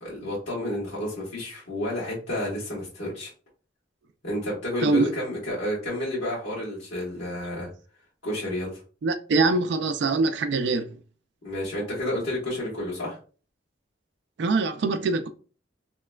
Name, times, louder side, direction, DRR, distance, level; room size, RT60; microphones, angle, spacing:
voice 1, 0.0-3.3 4.2-7.7 8.2-8.8 11.4-13.2, left 1 dB, 75° left, 1.3 m, -30 dB
voice 2, 4.8-5.1 9.0-11.0 14.4-15.3, right 3 dB, 70° right, 0.4 m, -23 dB
3.2 x 2.9 x 2.3 m
head